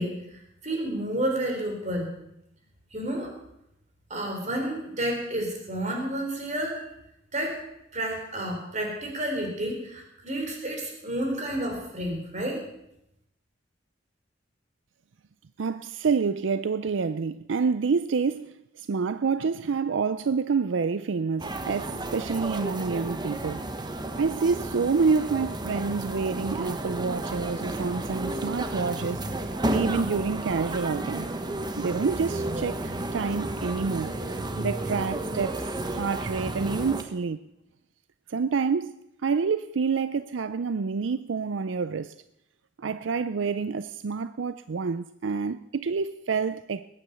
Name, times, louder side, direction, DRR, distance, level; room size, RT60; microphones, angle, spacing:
voice 1, 0.0-2.1 2.9-3.3 4.1-6.8 7.3-7.6 7.9-12.6, right 1 dB, 40° right, 4.0 m, -30 dB
voice 2, 15.6-23.7 24.2-29.2 29.7-31.3 31.8-34.1 34.6-37.4 38.3-38.9 39.2-42.1 42.8-46.9, right 5 dB, 85° right, 0.5 m, -28 dB
sound 1, 21.4-37.0, right 1 dB, 25° right, 1.1 m, -32 dB
20.5 x 9.4 x 6.9 m
head